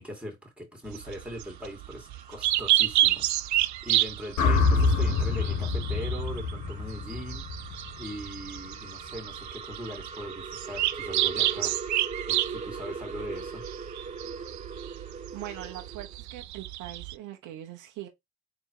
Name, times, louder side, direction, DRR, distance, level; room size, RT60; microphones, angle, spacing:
voice 1, 0.0-11.8 12.3-13.6, equal, 5° right, 2.3 m, -40 dB
sound 1, 0.9-17.2, right 14 dB, 70° right, 0.5 m, -30 dB
sound 2, 1.0-16.1, right 5 dB, 25° right, 0.7 m, -42 dB
sound 3, 4.4-8.6, left 4 dB, 75° left, 1.1 m, -26 dB
voice 2, 15.3-18.1, right 12 dB, 90° right, 0.8 m, -41 dB
3.9 x 2.9 x 4.6 m
cardioid pair, 90°, 30 cm